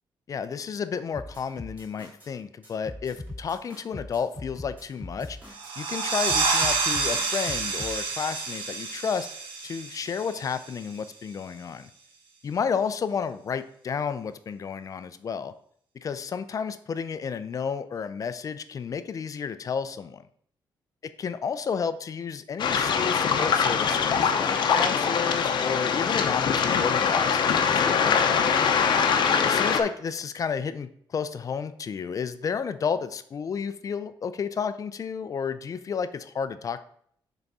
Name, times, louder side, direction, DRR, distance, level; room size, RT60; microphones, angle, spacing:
voice 1, 0.3-9.3 9.6-11.9 12.4-15.5 15.9-20.2 21.2-28.4 29.4-36.8, left 6 dB, 45° left, 12 dB, 0.5 m, -31 dB
sound 1, 1.1-2.3 2.6-5.7 6.0-8.0, left 1 dB, 20° right, 3.1 m, -41 dB
sound 2, 5.5-10.9, right 4 dB, 80° right, 1.3 m, -28 dB
Waves surf, 22.6-29.8, left 6 dB, 65° left, 0.8 m, -23 dB
5.8 x 4.0 x 5.4 m, 0.63 s
cardioid pair, 130°, 8 cm